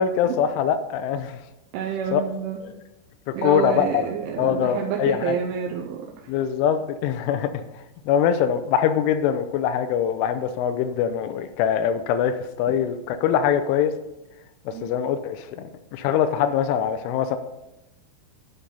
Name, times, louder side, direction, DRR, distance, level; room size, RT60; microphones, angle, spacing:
voice 1, 0.0-1.4 2.1-2.2 3.3-4.0 4.4-5.4 6.3-7.6 8.1-13.9 14.7-17.4, left 8 dB, 85° left, 9 dB, 3.1 m, -23 dB
voice 2, 1.7-2.6 3.3-6.3 14.7-14.9, right 7 dB, 80° right, 0 dB, 3.1 m, -28 dB
11.5 x 5.1 x 5.4 m, 0.93 s
omnidirectional pair, 5.5 m